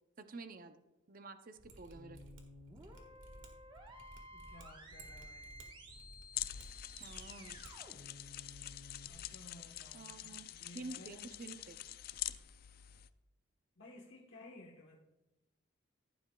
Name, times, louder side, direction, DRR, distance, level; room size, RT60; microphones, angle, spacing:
voice 1, 0.2-0.8 1.1-2.2 7.0-7.6 9.9-11.8, right 3 dB, 40° right, 9 dB, 0.6 m, -50 dB
Mechanisms, 1.6-7.7 8.0-8.1, right 2 dB, 70° right, 1.6 m, -56 dB
sound 1, 1.9-9.1, equal, 25° right, 1.1 m, -55 dB
voice 2, 4.3-5.6 9.1-11.3 13.8-15.0, left 2 dB, 70° left, -3 dB, 1.2 m, -56 dB
sound 2, 6.3-13.1, left 12 dB, 45° left, 0.3 m, -46 dB
15.0 x 11.0 x 2.3 m, 1.0 s
head